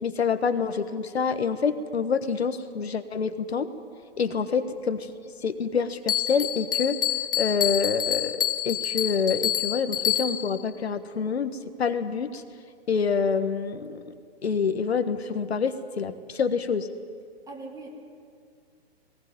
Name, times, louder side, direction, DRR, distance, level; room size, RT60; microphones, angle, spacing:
voice 1, 0.0-3.7 4.2-5.1 5.4-7.0 7.3-12.4 12.9-14.1 14.4-16.9, left 5 dB, 75° left, 10 dB, 1.4 m, -27 dB
Bell, 6.1-10.6, left 10 dB, 10° left, 0.8 m, -27 dB
voice 2, 17.5-17.9, right 3 dB, 10° right, 1 dB, 3.1 m, -40 dB
19.5 x 17.5 x 9.4 m, 2.2 s
figure-of-eight pair, 125°, 32 cm